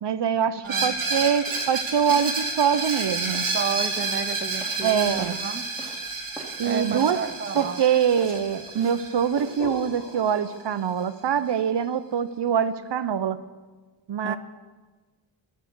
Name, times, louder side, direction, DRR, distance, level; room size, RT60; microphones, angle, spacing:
voice 1, 0.0-3.5 4.8-5.3 6.6-7.2 7.5-13.4 14.1-14.4, right 8 dB, 60° right, 14 dB, 0.7 m, -24 dB
voice 2, 0.6-1.1 3.3-5.6 6.6-7.8 14.2-14.4, right 6 dB, 25° right, 10 dB, 0.6 m, -32 dB
Screech, 0.7-10.3, right 3 dB, 80° right, 2.6 m, -30 dB
sound 1, 1.5-1.7 2.1-2.4 2.7-3.0 3.3-3.6 3.9-5.5 5.8-6.1 6.3-6.6 7.0-7.3 7.5-7.8 8.2-9.0 9.4-9.6, right 1 dB, ahead, 2.1 m, -43 dB
sound 2, 6.3-11.2, left 1 dB, 20° left, 3.0 m, -44 dB
11.0 x 8.0 x 7.8 m, 1.4 s
cardioid pair, 55°, 48 cm